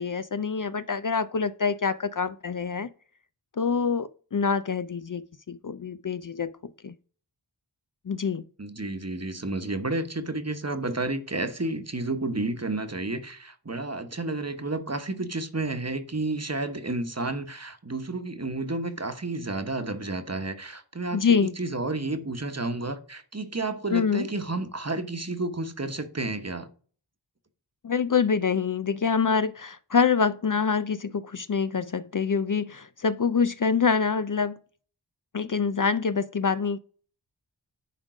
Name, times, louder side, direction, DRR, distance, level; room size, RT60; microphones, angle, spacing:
voice 1, 0.0-2.9 3.6-6.5 6.8-6.9 8.1-8.4 21.1-21.5 23.9-24.3 27.8-34.6 35.3-36.8, left 5 dB, 45° left, 0.5 m, -25 dB
voice 2, 8.6-26.7, right 2 dB, 35° right, 1.1 m, -31 dB
10.0 x 3.7 x 4.9 m
wide cardioid pair, 40°, 44 cm